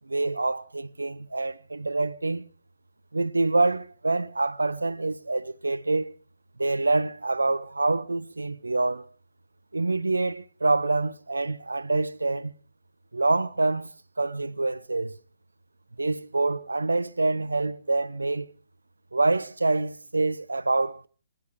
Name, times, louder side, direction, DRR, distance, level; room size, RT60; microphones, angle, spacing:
voice 1, 0.1-2.5 3.1-6.1 6.6-9.1 9.7-12.5 13.1-15.2 16.0-18.5 19.1-21.1, right 2 dB, 80° right, 0.7 m, -26 dB
27.0 x 10.5 x 4.8 m
figure-of-eight pair, 130°, 0 cm